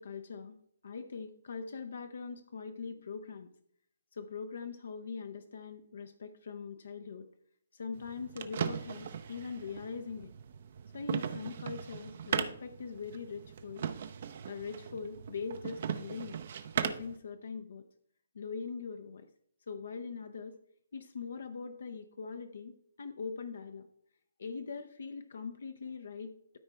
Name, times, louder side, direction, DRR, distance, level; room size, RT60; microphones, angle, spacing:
voice 1, 0.0-3.5 4.1-7.3 7.7-10.3 10.9-13.9 14.5-16.4 16.8-17.8 18.3-19.3 19.7-20.6 20.9-23.9 24.4-26.6, left 5 dB, 65° left, 7 dB, 0.6 m, -42 dB
sound 1, 7.9-17.2, right 8 dB, 50° right, 0.6 m, -38 dB
13.0 x 4.4 x 3.4 m, 0.69 s
figure-of-eight pair, 140°, 0 cm